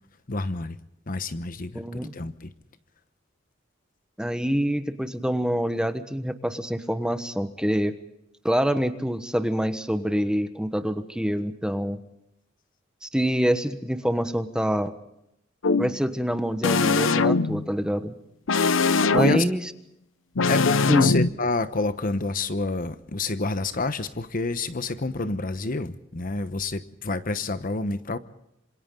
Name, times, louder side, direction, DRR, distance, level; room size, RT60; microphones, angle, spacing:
voice 1, 0.3-0.8 1.1-2.5 19.0-19.4 20.5-28.2, left 3 dB, 45° left, 1.0 m, -28 dB
voice 2, 1.7-2.1 4.2-7.9 8.4-12.0 13.0-14.9 15.8-18.2 19.1-19.6 20.9-21.1, equal, 5° right, 1.2 m, -26 dB
sound 1, 15.6-16.0 16.6-17.7 18.5-19.6 20.4-21.3, left 4 dB, 80° left, 0.7 m, -21 dB
27.0 x 26.5 x 3.9 m
head